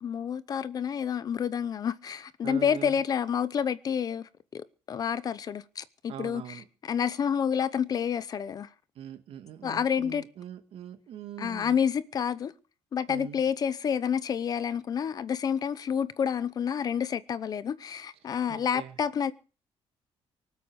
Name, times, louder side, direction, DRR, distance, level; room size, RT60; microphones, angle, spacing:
voice 1, 0.0-8.7 9.6-10.2 11.4-12.5 12.9-19.3, left 7 dB, 35° left, 0.7 m, -29 dB
voice 2, 2.4-3.0 6.1-6.7 9.0-11.8 13.1-13.4 18.2-19.0, right 9 dB, 60° right, 2.2 m, -42 dB
24.0 x 8.4 x 6.4 m
cardioid pair, 180°, 11 cm